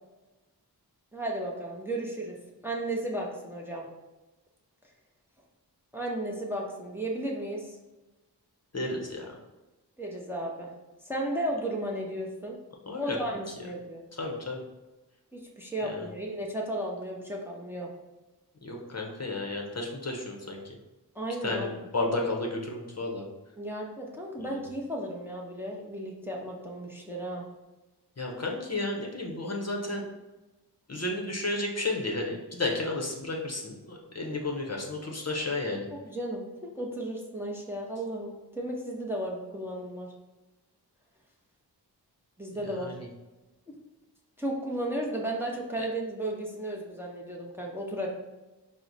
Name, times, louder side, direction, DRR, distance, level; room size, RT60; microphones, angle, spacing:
voice 1, 1.1-2.4 2.6-3.9 5.9-7.8 10.0-10.7 11.0-12.6 13.0-14.0 15.3-17.9 21.1-21.9 23.6-27.4 35.9-40.1 42.4-42.9 43.7-43.8 44.4-48.1, right 1 dB, 5° right, -1 dB, 0.6 m, -34 dB
voice 2, 8.7-9.3 12.9-13.2 14.2-14.6 15.8-16.1 18.6-20.6 21.4-23.2 24.4-24.6 28.2-30.0 30.9-35.9 42.6-43.1 45.8-45.9, left 2 dB, 40° left, 0 dB, 0.7 m, -32 dB
4.6 x 2.1 x 3.9 m, 1.1 s
wide cardioid pair, 55°, 41 cm